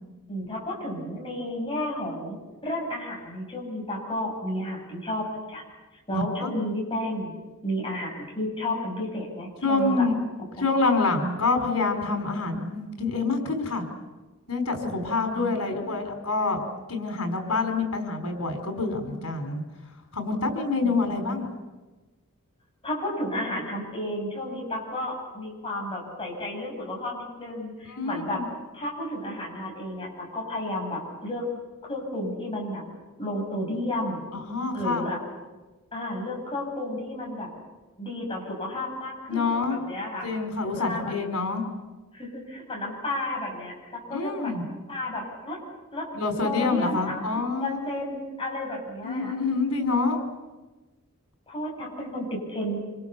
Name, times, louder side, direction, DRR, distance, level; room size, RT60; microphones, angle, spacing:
voice 1, 0.3-5.6 6.1-7.3 7.6-10.1 15.3-15.9 20.8-21.4 22.8-28.4 28.7-31.4 31.9-32.8 33.2-34.2 34.7-35.2 35.9-37.5 38.0-40.3 40.8-41.3 42.1-45.6 45.9-46.1 46.4-47.2 47.6-49.3 51.5-52.8, left 1 dB, 25° left, -1 dB, 7.9 m, -32 dB
voice 2, 6.1-6.6 9.6-10.1 10.6-13.8 14.5-16.6 16.9-19.6 20.1-21.5 27.9-28.5 34.3-35.1 39.3-39.8 40.2-41.6 44.1-44.6 46.1-48.1 49.0-50.2, left 3 dB, 90° left, 4 dB, 5.0 m, -27 dB
26.5 x 26.0 x 7.1 m, 1.2 s
head